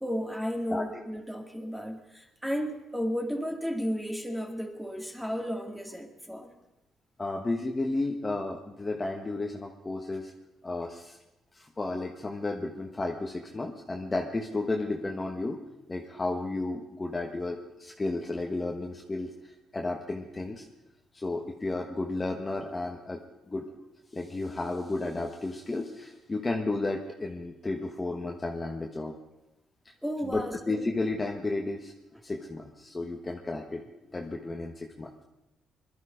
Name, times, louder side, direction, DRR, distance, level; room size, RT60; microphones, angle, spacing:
voice 1, 0.0-6.5 30.0-30.9 34.2-34.3, equal, 5° right, 4 dB, 2.0 m, -33 dB
voice 2, 7.2-10.3 10.6-11.2 11.5-15.6 15.9-20.6 21.1-23.2 23.5-23.6 24.1-29.1 30.2-31.9 32.2-33.8 34.1-35.1, left 2 dB, 25° left, 1 dB, 1.4 m, -33 dB
21.0 x 12.0 x 5.1 m, 0.93 s
cardioid pair, 90°, 0 cm